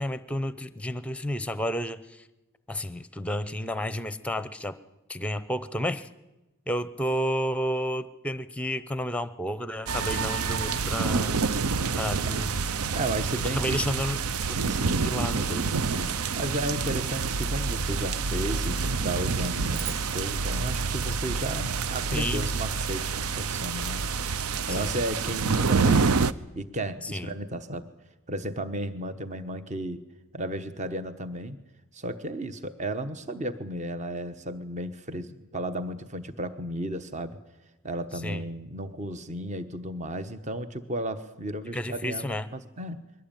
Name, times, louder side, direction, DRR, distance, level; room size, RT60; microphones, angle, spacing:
voice 1, 0.0-2.3 2.7-4.8 5.1-6.1 6.7-11.5 12.0-12.5 13.5-14.2 14.5-14.6 15.0-15.6 22.1-22.5 24.7-24.9 27.0-27.4 38.2-38.4 41.7-42.5, equal, 5° left, 13 dB, 0.7 m, -31 dB
sound 1, 9.9-26.3, right 4 dB, 85° right, 0.7 m, -27 dB
voice 2, 12.9-13.8 14.7-24.0 24.7-26.1 26.5-27.9 28.3-30.0 30.3-31.6 31.9-37.4 37.8-43.0, right 1 dB, 30° right, 11 dB, 1.1 m, -34 dB
sound 2, 19.7-22.2, right 7 dB, 55° right, 1.9 m, -43 dB
22.0 x 17.0 x 9.0 m, 1.0 s
head